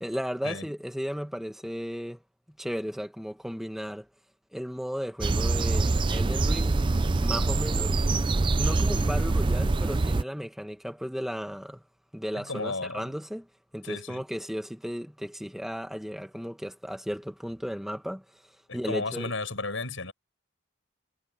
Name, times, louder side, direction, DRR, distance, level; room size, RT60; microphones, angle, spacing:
voice 1, 0.0-2.2 2.6-4.1 4.5-6.8 7.2-7.9 8.5-11.8 12.1-13.5 13.7-18.2 18.7-19.3, equal, ahead, 1.8 m, -35 dB
sound 1, 5.2-10.2, right 3 dB, 25° right, 0.4 m, -25 dB
voice 2, 12.3-13.1 13.8-14.2 18.7-20.1, left 3 dB, 80° left, 5.7 m, -34 dB
head